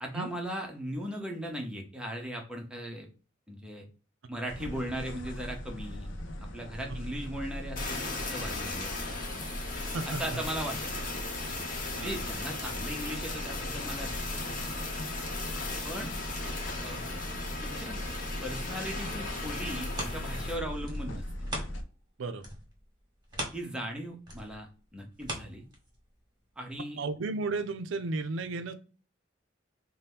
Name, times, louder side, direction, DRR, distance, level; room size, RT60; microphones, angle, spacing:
voice 1, 0.0-3.1 3.5-3.9 4.3-6.1 6.5-9.2 10.0-10.9 12.0-14.2 14.5-14.8 15.8-16.1 16.8-17.0 17.6-18.0 18.4-21.2 23.5-25.6 26.6-27.0, equal, 5° right, 0 dB, 0.7 m, -38 dB
sound 1, 4.5-21.8, equal, 75° left, 0.6 m, -39 dB
Fire, 7.8-20.6, left 3 dB, 45° left, 0.9 m, -37 dB
voice 2, 9.9-10.4 12.0-12.2 22.2-22.4 27.0-28.7, right 3 dB, 85° right, 9 dB, 0.4 m, -34 dB
sound 2, 19.9-22.1 22.4-26.2 26.7-26.8, right 1 dB, 25° right, 1.1 m, -41 dB
2.8 x 2.2 x 3.3 m, 0.37 s
head